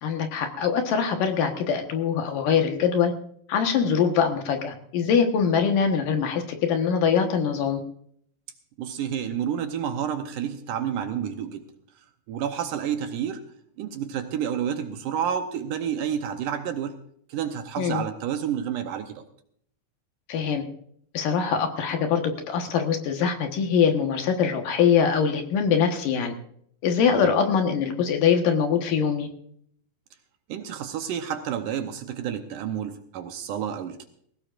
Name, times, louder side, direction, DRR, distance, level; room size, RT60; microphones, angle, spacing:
voice 1, 0.0-3.1 3.5-7.8 17.8-18.0 20.3-20.6 21.1-26.3 26.8-29.3, left 7 dB, 70° left, 4 dB, 2.8 m, -23 dB
voice 2, 8.8-11.6 12.3-13.4 13.8-17.0 17.3-19.3 27.1-27.3 30.5-34.1, right 8 dB, 70° right, 7 dB, 2.2 m, -30 dB
20.5 x 17.5 x 2.5 m, 0.66 s
omnidirectional pair, 4.3 m